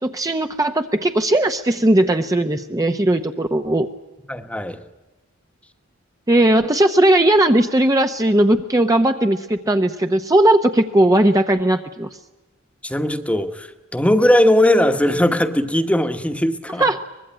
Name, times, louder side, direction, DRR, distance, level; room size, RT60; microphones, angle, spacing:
voice 1, 0.0-3.9 6.3-12.1 16.8-17.0, right 1 dB, 15° right, 0.8 m, -17 dB
voice 2, 4.3-4.8 12.8-16.9, left 1 dB, 5° left, 1.2 m, -18 dB
24.0 x 21.0 x 9.0 m
head